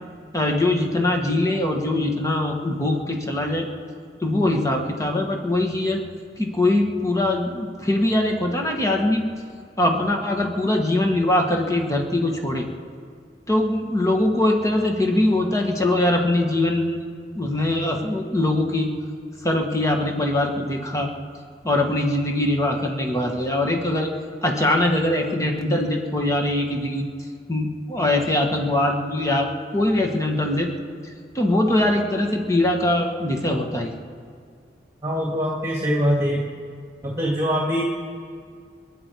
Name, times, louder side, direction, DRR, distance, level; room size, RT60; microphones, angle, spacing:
voice 1, 0.3-3.7 4.2-6.0 6.4-9.2 9.8-12.7 13.5-17.0 17.4-18.9 19.4-21.1 21.6-24.1 24.4-27.1 27.5-30.7 31.4-33.9, left 1 dB, 20° left, 1 dB, 1.8 m, -22 dB
voice 2, 35.0-36.5 37.0-37.8, equal, 15° right, -3 dB, 2.2 m, -23 dB
29.0 x 10.0 x 4.8 m, 2.2 s
head